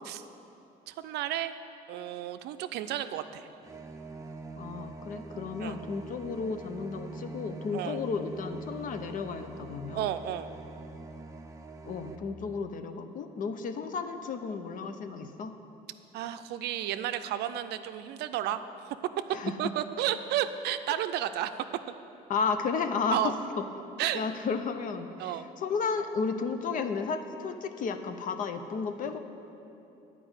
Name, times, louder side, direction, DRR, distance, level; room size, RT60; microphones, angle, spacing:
voice 1, 0.9-1.6 1.9-3.5 5.6-5.8 7.7-8.0 9.9-10.5 16.1-19.0 19.6-21.5 23.1-23.3 24.0-24.2 25.2-25.5, right 12 dB, 80° right, 10 dB, 0.5 m, -32 dB
sound 1, 3.6-12.2, right 3 dB, 20° right, 0.7 m, -44 dB
voice 2, 4.6-10.1 11.8-15.6 19.3-19.6 22.3-23.3 24.1-29.2, left 5 dB, 50° left, 8 dB, 0.6 m, -33 dB
9.6 x 5.0 x 8.0 m, 2.9 s
cardioid pair, 110°, 17 cm